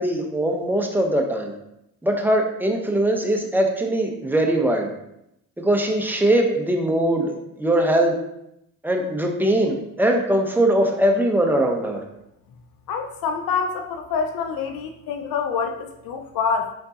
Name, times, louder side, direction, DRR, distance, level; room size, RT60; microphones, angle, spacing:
voice 1, 0.0-1.5 2.0-4.9 5.6-8.1 8.8-12.0, right 1 dB, 5° right, 1 dB, 0.8 m, -21 dB
voice 2, 12.9-16.7, left 5 dB, 70° left, 5 dB, 0.6 m, -26 dB
4.4 x 3.9 x 2.8 m, 0.82 s
supercardioid pair, 75°, 37 cm